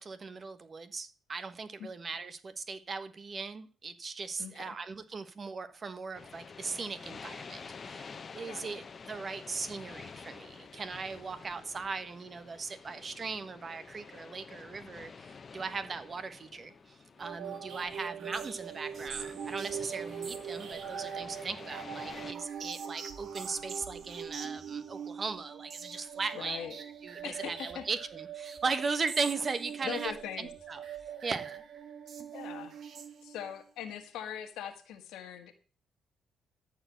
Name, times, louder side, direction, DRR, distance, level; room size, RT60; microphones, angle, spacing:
voice 1, 0.0-30.8 31.2-31.6, right 4 dB, 40° right, 11 dB, 1.3 m, -38 dB
voice 2, 4.4-4.8 8.5-8.7 26.3-26.8 27.2-27.9 29.8-30.5 32.3-32.8 33.2-35.5, left 10 dB, 90° left, 7 dB, 1.7 m, -41 dB
sound 1, 6.1-22.3, left 5 dB, 40° left, 1.0 m, -49 dB
sound 2, 17.2-33.6, right 7 dB, 60° right, 1.8 m, -42 dB
14.0 x 4.7 x 8.2 m, 0.39 s
cardioid pair, 90°, 0 cm